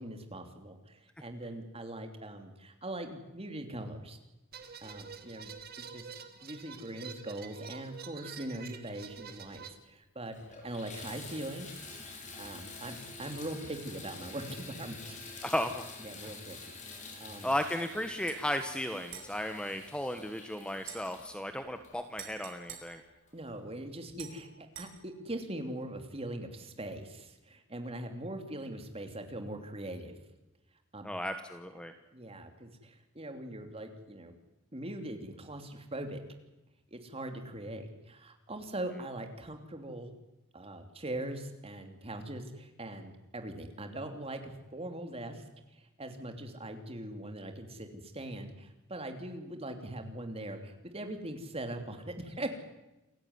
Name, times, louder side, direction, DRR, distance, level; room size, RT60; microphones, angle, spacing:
voice 1, 0.0-4.2 4.8-6.1 6.4-10.4 10.6-15.0 15.3-15.5 16.0-16.8 17.2-17.5 23.3-30.1 30.9-31.1 32.1-34.3 34.7-36.2 36.9-40.1 40.5-45.4 45.7-52.6, right 1 dB, 30° right, 6 dB, 3.0 m, -41 dB
sound 1, 4.5-9.7, right 6 dB, 45° right, 1.9 m, -47 dB
Water tap faucet / Bathtub (filling or washing), 9.6-9.7 10.2-22.6 23.3-23.4 23.9-24.0, left 3 dB, 35° left, 5.2 m, -48 dB
voice 2, 15.4-15.8 16.2-16.3 17.4-23.0 31.0-31.9, left 1 dB, 5° left, 7 dB, 1.2 m, -35 dB
sound 2, 18.2-18.4 19.1-20.3 20.8-23.7 24.2-24.9, right 8 dB, 70° right, 5.8 m, -50 dB
28.0 x 16.0 x 9.6 m, 0.99 s
head